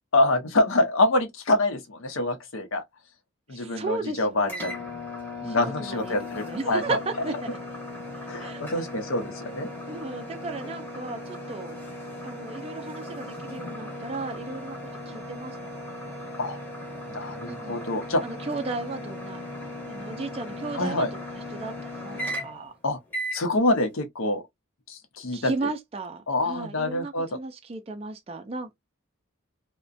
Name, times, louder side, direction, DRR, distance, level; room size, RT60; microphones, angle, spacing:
voice 1, 0.1-2.8 3.5-4.8 5.4-7.0 8.3-9.7 16.4-16.6 17.1-18.2 20.8-21.1 22.8-23.0 23.3-24.4 24.9-25.5 26.3-27.3, left 2 dB, 80° left, 0.7 m, -26 dB
voice 2, 3.5-4.6 5.4-7.6 8.1-8.6 9.8-11.8 12.2-14.8 15.1-16.2 17.4-17.8 18.2-19.4 19.8-22.7 25.3-28.7, right 3 dB, 30° right, 0.3 m, -35 dB
sound 1, 4.5-22.7 23.1-23.4, left 1 dB, 10° left, 0.8 m, -37 dB
2.4 x 2.1 x 2.5 m
head